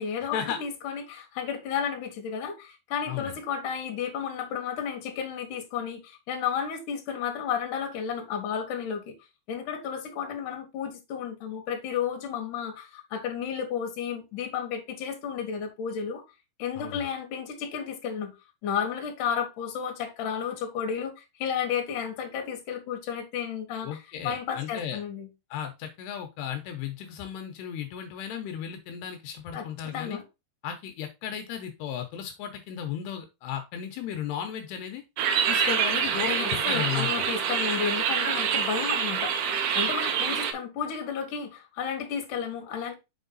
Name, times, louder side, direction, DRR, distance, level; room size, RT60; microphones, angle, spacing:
voice 1, 0.0-9.1 9.5-16.2 16.6-18.3 18.6-23.9 24.2-25.3 29.5-30.2 36.4-42.9, left 7 dB, 60° left, 2.8 m, -32 dB
voice 2, 16.8-17.1 23.8-25.0 25.5-30.2 30.6-35.0 35.5-37.3, left 9 dB, 80° left, 2.8 m, -35 dB
sound 1, 35.2-40.5, right 7 dB, 75° right, 2.8 m, -26 dB
6.6 x 4.6 x 3.9 m
omnidirectional pair, 4.8 m